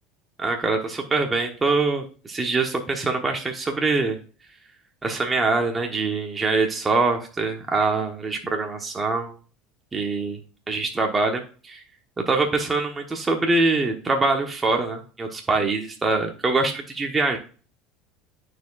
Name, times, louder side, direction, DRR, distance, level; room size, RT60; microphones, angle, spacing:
voice 1, 0.4-4.2 5.0-9.3 9.9-10.4 10.7-11.8 12.3-17.4, right 3 dB, 20° right, 2 dB, 1.1 m, -24 dB
12.0 x 4.7 x 2.4 m, 0.38 s
supercardioid pair, 105°, 0 cm